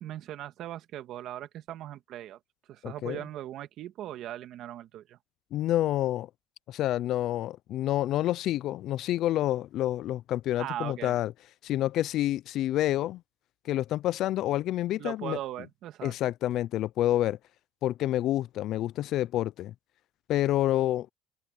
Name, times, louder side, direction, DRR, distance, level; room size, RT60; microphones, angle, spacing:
voice 1, 0.0-2.4 2.7-5.2 10.6-11.1 14.9-16.3, right 12 dB, 55° right, 1.6 m, -39 dB
voice 2, 2.8-3.2 5.5-6.3 6.7-11.3 11.6-13.2 13.6-15.4 16.0-17.4 17.8-19.7 20.3-21.1, left 13 dB, 55° left, 0.4 m, -28 dB
cardioid pair, 130°, 0 cm